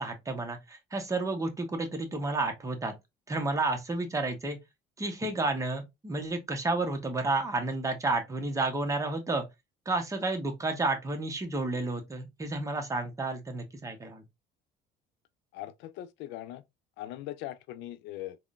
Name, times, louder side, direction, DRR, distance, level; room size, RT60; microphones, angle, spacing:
voice 1, 0.0-2.9 3.3-4.6 5.0-9.4 9.9-14.2, right 2 dB, 15° right, 0.8 m, -31 dB
voice 2, 15.5-16.6 17.0-18.4, left 14 dB, 75° left, 0.4 m, -40 dB
3.6 x 2.1 x 2.3 m
cardioid pair, 110°, 19 cm